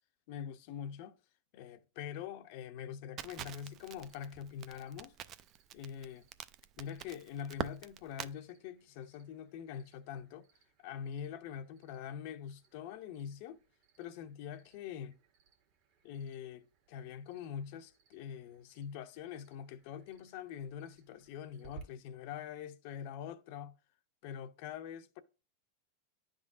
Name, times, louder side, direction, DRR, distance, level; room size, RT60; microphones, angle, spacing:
voice 1, 0.3-1.2 1.5-5.2 5.7-6.3 6.8-10.5 10.8-13.6 14.0-15.1 16.0-23.7 24.2-25.2, left 8 dB, 55° left, 0.6 m, -44 dB
Crackle, 3.2-8.3, right 11 dB, 35° right, 0.3 m, -45 dB
Cricket, 4.0-21.8, right 7 dB, 55° right, 1.5 m, -63 dB
10.5 x 3.7 x 2.5 m
supercardioid pair, 135°, 0 cm